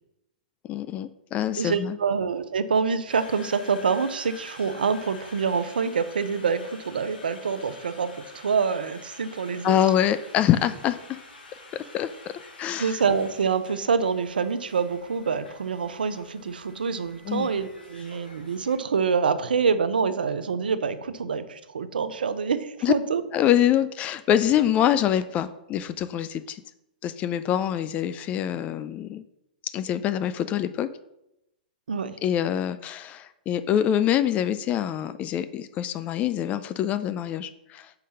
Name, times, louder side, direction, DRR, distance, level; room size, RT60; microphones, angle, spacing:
voice 1, 0.7-2.0 9.6-11.2 11.7-12.3 12.6-13.0 17.3-17.5 22.8-22.9 23.3-26.6 27.0-29.2 29.7-30.9 32.2-37.9, left 10 dB, 30° left, 13 dB, 0.3 m, -25 dB
voice 2, 1.6-9.8 12.8-23.2 31.9-32.2, right 5 dB, 85° right, 13 dB, 0.6 m, -26 dB
Conversation, 3.1-18.8, left 3 dB, 90° left, 1.8 m, -48 dB
5.8 x 4.8 x 5.6 m, 0.86 s
hypercardioid pair, 120°, 5 cm